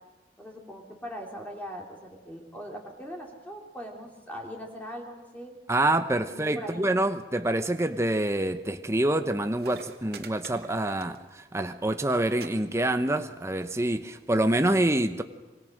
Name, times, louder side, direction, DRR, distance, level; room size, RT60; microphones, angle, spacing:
voice 1, 0.4-5.5 6.3-6.9, equal, 10° left, 3.0 m, -40 dB
voice 2, 5.7-15.2, right 1 dB, 15° right, 0.8 m, -26 dB
sound 1, 9.5-11.5 11.7-12.0 12.4-12.5 12.8-13.3 14.1-14.2, right 5 dB, 60° right, 2.6 m, -46 dB
27.0 x 24.5 x 6.4 m
head